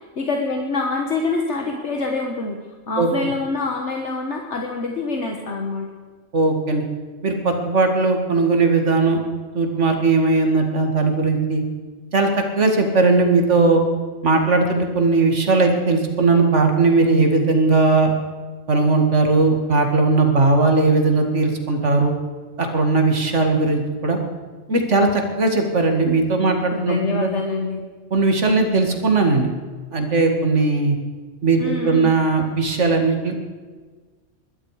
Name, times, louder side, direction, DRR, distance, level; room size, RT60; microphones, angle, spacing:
voice 1, 0.2-2.6 2.9-5.9 26.7-27.8 31.6-32.1, left 3 dB, 65° left, 2 dB, 1.7 m, -25 dB
voice 2, 6.3-6.8 7.2-9.2 9.5-11.6 12.1-12.3 12.6-13.8 14.2-18.1 18.7-22.1 22.6-24.2 24.7-27.3 28.1-29.5 29.9-31.0 31.4-33.4, right 3 dB, 65° right, 4 dB, 2.4 m, -18 dB
21.5 x 12.5 x 4.9 m, 1.4 s
omnidirectional pair, 1.3 m